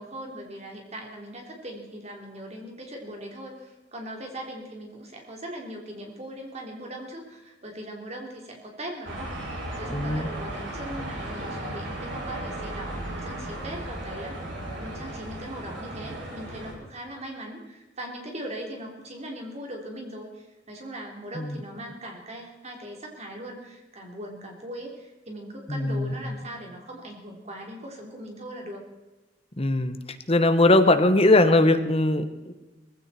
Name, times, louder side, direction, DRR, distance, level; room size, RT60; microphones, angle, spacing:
voice 1, 0.0-9.3 9.7-14.4 14.8-28.9, right 1 dB, 35° right, 2 dB, 3.6 m, -39 dB
sound 1, 9.0-16.7, right 1 dB, 70° right, 6.1 m, -35 dB
voice 2, 9.9-10.3 21.4-21.5 25.7-26.1 29.6-30.0 30.3-32.5, left 2 dB, 35° left, 9 dB, 1.2 m, -20 dB
19.0 x 16.0 x 4.4 m, 1.1 s
head